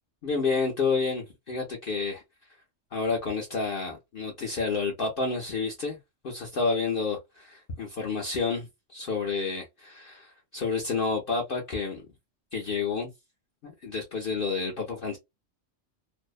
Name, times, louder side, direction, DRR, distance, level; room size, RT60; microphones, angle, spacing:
voice 1, 0.2-2.2 2.9-6.0 6.2-12.1 12.5-13.1 13.6-15.2, left 4 dB, 50° left, 0.8 m, -30 dB
2.7 x 2.0 x 2.3 m
omnidirectional pair, 1.3 m